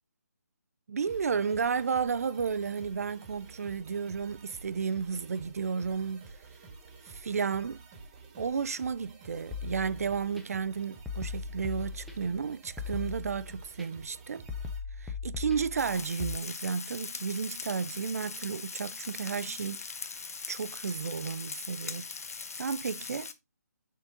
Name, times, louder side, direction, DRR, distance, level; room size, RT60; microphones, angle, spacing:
voice 1, 0.9-6.2 7.1-7.8 8.4-14.4 15.0-19.8 20.5-22.1 22.6-23.3, right 6 dB, 60° right, 0.4 m, -32 dB
sound 1, 1.1-14.8, right 4 dB, 20° right, 1.3 m, -51 dB
sound 2, 9.5-10.4 11.1-12.4 12.8-13.8 14.5-16.4, left 5 dB, ahead, 0.5 m, -39 dB
Frying (food), 15.8-23.3, left 5 dB, 60° left, 0.8 m, -41 dB
6.4 x 4.0 x 3.7 m
hypercardioid pair, 160°, 9 cm